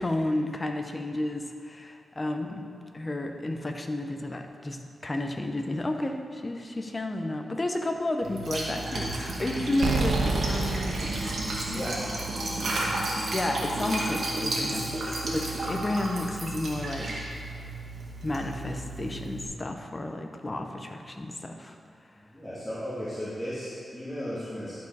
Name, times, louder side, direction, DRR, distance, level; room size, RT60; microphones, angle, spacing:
voice 1, 0.0-11.3 13.3-15.0 15.3-17.1 18.2-21.8, left 1 dB, 30° left, 4 dB, 0.7 m, -32 dB
Liquid, 8.2-19.5, right 2 dB, 65° right, 1.7 m, -32 dB
sound 1, 9.8-12.5, right 3 dB, 85° right, 0.6 m, -29 dB
voice 2, 11.7-12.7 22.3-24.7, equal, 10° left, -12 dB, 2.1 m, -35 dB
11.0 x 4.8 x 4.7 m, 2.3 s
cardioid pair, 80°, 0 cm